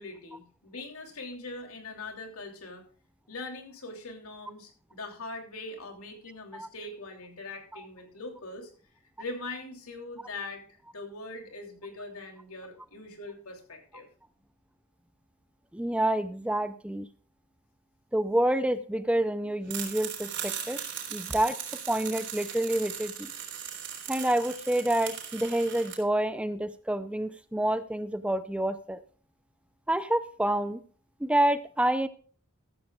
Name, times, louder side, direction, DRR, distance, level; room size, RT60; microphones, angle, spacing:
voice 1, 0.0-2.9 3.3-8.7 9.2-10.6 10.9-14.1, left 2 dB, 85° left, 4 dB, 3.0 m, -41 dB
voice 2, 15.7-17.1 18.1-20.8 21.1-21.6 21.9-23.3 24.1-29.0 29.9-30.8 31.2-32.1, right 1 dB, 5° right, 12 dB, 0.5 m, -28 dB
sound 1, 19.7-26.0, right 8 dB, 55° right, 3.7 m, -38 dB
14.0 x 14.0 x 2.4 m, 0.41 s
head